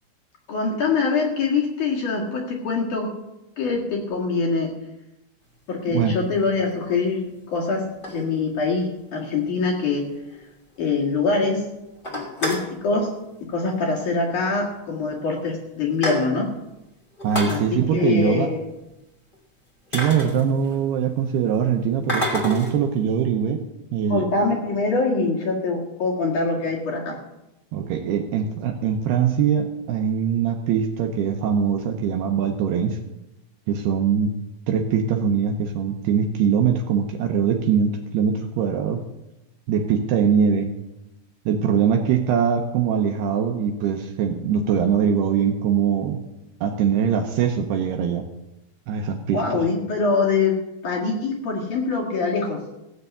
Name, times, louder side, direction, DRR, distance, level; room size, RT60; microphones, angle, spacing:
voice 1, 0.5-3.1 3.6-4.8 5.7-10.1 10.8-11.6 12.1-13.1 13.4-16.5 17.5-18.6 24.1-27.2 49.3-52.6, left 4 dB, 50° left, -2 dB, 2.8 m, -24 dB
sound 1, 5.8-5.9 6.7-6.8 7.7-8.7 9.1-9.2 9.4-9.5 9.9-10.0 10.3-10.4 10.8-11.2 11.5-11.6 11.9-12.7 13.8-14.1 14.4-14.5 15.2-15.3 15.6-16.6 17.1-17.6 19.3-19.4 19.9-20.9 22.1-22.8, left 1 dB, 20° left, 1.6 m, -29 dB
voice 2, 17.2-18.5 19.9-23.6 23.9-24.3 27.7-33.0 33.7-34.3 34.7-39.0 39.7-40.7 41.5-46.2 46.6-48.3 48.9-49.6, right 7 dB, 80° right, 3 dB, 2.5 m, -22 dB
16.0 x 6.8 x 8.3 m, 0.94 s
omnidirectional pair, 5.4 m